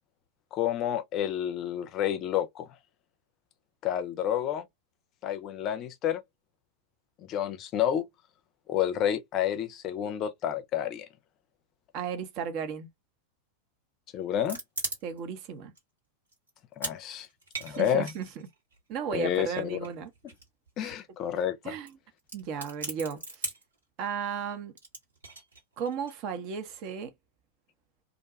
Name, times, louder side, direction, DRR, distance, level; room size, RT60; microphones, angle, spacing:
voice 1, 0.5-2.7 3.8-4.7 5.2-6.2 7.2-8.0 8.7-11.1 14.1-14.6 16.8-17.3 17.6-18.1 19.1-19.8 20.8-21.7, left 10 dB, 35° left, 0.5 m, -29 dB
voice 2, 11.9-12.9 15.0-15.7 17.6-18.3 18.9-20.1 20.8-20.9 21.6-21.9 22.3-23.5 24.0-24.7 25.8-27.1, right 7 dB, 40° right, 0.7 m, -35 dB
sound 1, 14.2-15.4 15.8-15.9 16.3-17.0 17.2-18.8 19.6-20.7 21.0-21.1 21.2-21.4 21.9-22.0 22.2-23.7 24.8-26.1, right 3 dB, 75° right, 1.3 m, -38 dB
2.5 x 2.2 x 2.7 m
figure-of-eight pair, 90°, 0 cm